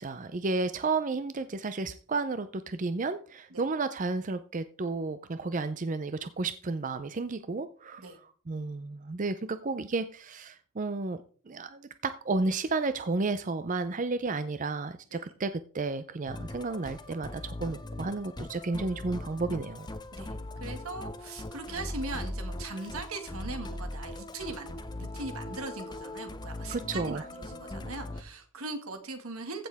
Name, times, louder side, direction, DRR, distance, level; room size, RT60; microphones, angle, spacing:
voice 1, 0.0-19.9 26.7-27.2, right 3 dB, 35° right, 11 dB, 0.5 m, -32 dB
Musical instrument, 16.3-28.2, left 1 dB, 20° left, 0.7 m, -40 dB
voice 2, 20.6-29.7, right 3 dB, 85° right, 6 dB, 1.9 m, -40 dB
15.0 x 6.6 x 3.5 m, 0.42 s
head